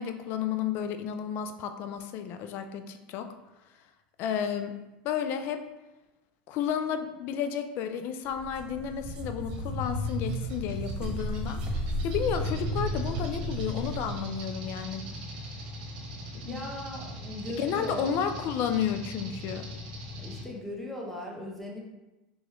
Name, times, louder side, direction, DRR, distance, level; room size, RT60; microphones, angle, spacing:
voice 1, 0.0-3.3 4.2-4.7 5.0-5.6 6.5-11.6 12.0-15.0 16.3-16.6 17.5-19.7, left 8 dB, 50° left, 8 dB, 0.4 m, -32 dB
sound 1, 8.2-14.2, equal, 20° right, 0.6 m, -38 dB
sound 2, 8.6-20.4, equal, 65° right, 1.1 m, -36 dB
voice 2, 16.5-18.2 20.2-21.8, left 1 dB, 5° left, -2 dB, 0.9 m, -38 dB
3.5 x 3.0 x 3.1 m, 1.0 s
supercardioid pair, 110°, 5 cm